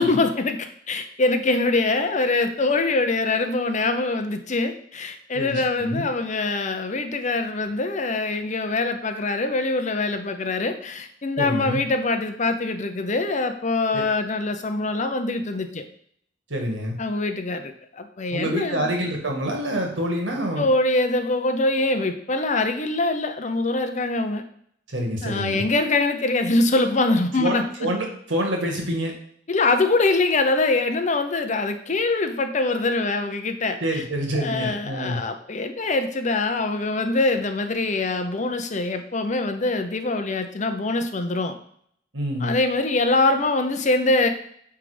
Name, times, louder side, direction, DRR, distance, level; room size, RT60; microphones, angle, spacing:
voice 1, 0.0-15.8 17.0-18.9 20.6-24.4 25.2-27.6 29.5-34.0 34.3-41.5 42.4-44.3, left 2 dB, 40° left, 7 dB, 0.8 m, -23 dB
voice 2, 5.3-6.1 11.4-11.8 13.9-14.0 16.5-17.0 18.3-20.7 24.9-25.6 27.4-29.1 33.8-35.2 42.1-42.5, equal, 85° right, 1 dB, 2.0 m, -27 dB
9.1 x 3.5 x 5.1 m, 0.64 s
head